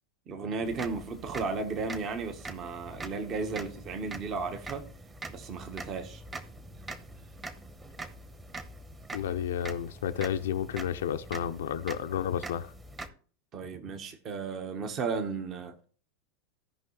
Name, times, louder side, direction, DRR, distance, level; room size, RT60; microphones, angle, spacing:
voice 1, 0.3-4.9 5.3-6.2 13.5-15.7, right 4 dB, 40° right, 1.3 m, -34 dB
sound 1, 0.6-13.1, right 2 dB, 20° right, 1.3 m, -44 dB
voice 2, 9.1-12.7, left 9 dB, 75° left, 0.5 m, -31 dB
16.0 x 5.5 x 3.2 m
hypercardioid pair, 90°, 0 cm